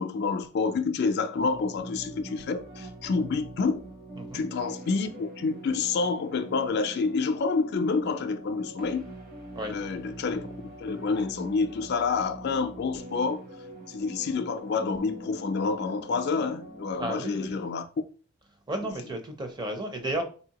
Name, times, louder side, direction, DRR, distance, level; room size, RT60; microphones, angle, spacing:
voice 1, 0.0-3.9 4.3-9.1 9.7-13.4 13.9-17.8, left 4 dB, 50° left, 0.3 m, -28 dB
sound 1, 1.3-16.9, right 1 dB, 45° right, 1.0 m, -44 dB
voice 2, 17.0-17.7 18.7-20.2, right 1 dB, 20° right, 0.5 m, -33 dB
4.0 x 2.7 x 2.9 m
head